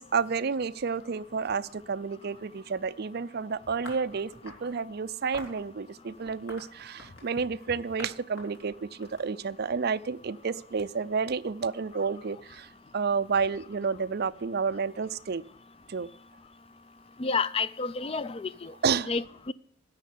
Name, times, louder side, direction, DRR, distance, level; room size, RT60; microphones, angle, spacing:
voice 1, 0.0-15.4 15.9-16.1 18.8-19.1, right 5 dB, 50° right, 0.5 m, -30 dB
sound 1, 3.8-4.7 5.3-5.6 6.3-7.4 8.0-8.1 8.4-9.8, equal, 75° left, 3.3 m, -45 dB
voice 2, 17.2-18.7 19.1-19.5, left 4 dB, 30° left, 0.4 m, -30 dB
10.5 x 6.7 x 8.4 m
head